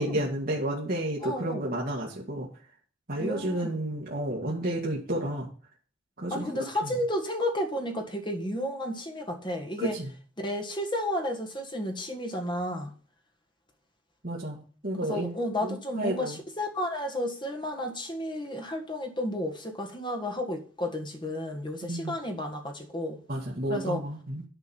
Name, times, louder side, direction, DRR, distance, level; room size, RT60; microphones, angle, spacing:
voice 1, 0.0-2.5 3.1-5.5 6.2-6.9 9.8-10.1 14.2-15.3 15.6-16.4 21.8-22.2 23.3-24.4, right 1 dB, 45° right, 1.8 m, -31 dB
voice 2, 1.2-1.6 3.2-3.8 6.3-10.0 10.4-12.9 15.0-23.2 23.7-24.0, left 1 dB, 25° left, 1.8 m, -32 dB
10.0 x 5.0 x 7.0 m
head